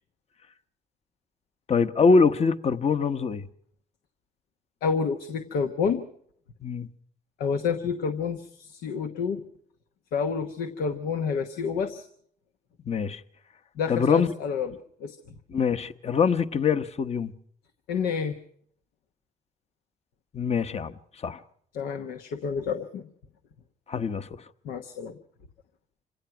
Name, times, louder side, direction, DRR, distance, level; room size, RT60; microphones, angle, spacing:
voice 1, 1.7-3.5 6.6-6.9 12.9-13.2 13.9-14.3 15.5-17.3 20.3-20.9 21.2-21.4 23.9-24.3, left 5 dB, 45° left, 1.1 m, -23 dB
voice 2, 4.8-6.1 7.4-9.4 10.1-12.1 13.8-15.2 17.9-18.4 21.7-23.1 24.6-25.2, left 6 dB, 85° left, 1.2 m, -29 dB
26.0 x 17.0 x 6.0 m
supercardioid pair, 65°, 15 cm